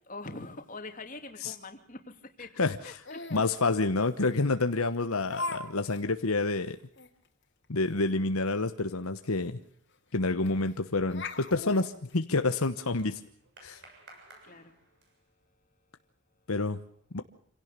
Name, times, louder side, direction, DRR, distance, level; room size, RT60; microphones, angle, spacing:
voice 1, 0.0-3.3 14.4-14.7, left 2 dB, 35° left, 6 dB, 2.8 m, -44 dB
voice 2, 2.6-3.0 3.3-6.8 7.7-9.6 10.1-13.2 13.6-13.8 16.5-16.8 17.1-17.2, left 3 dB, 75° left, 8 dB, 1.2 m, -28 dB
Laughter, 3.0-3.5 4.3-4.4 5.3-5.6 5.9-6.0 6.5-6.6 7.0-7.1 9.0-9.1 9.4-9.5 10.5-10.7 11.1-12.7, left 2 dB, 50° left, 2.9 m, -38 dB
sound 1, 9.6-15.4, right 2 dB, 50° right, 7.2 m, -58 dB
27.0 x 17.0 x 6.8 m, 0.65 s
head